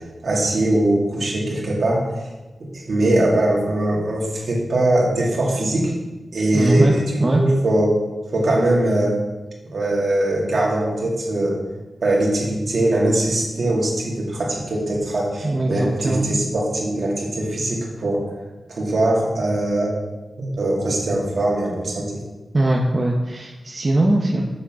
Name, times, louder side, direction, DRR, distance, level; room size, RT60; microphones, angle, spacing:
voice 1, 0.2-2.1 2.7-5.9 6.3-7.9 8.3-9.2 9.7-11.6 12.0-18.3 18.7-19.9 20.4-22.1, right 1 dB, 60° right, -3 dB, 2.4 m, -21 dB
voice 2, 6.5-6.9 7.2-7.4 15.4-16.3 22.5-24.4, right 1 dB, 30° right, -1 dB, 0.8 m, -20 dB
7.2 x 6.6 x 6.2 m, 1.2 s
wide cardioid pair, 150°, 0 cm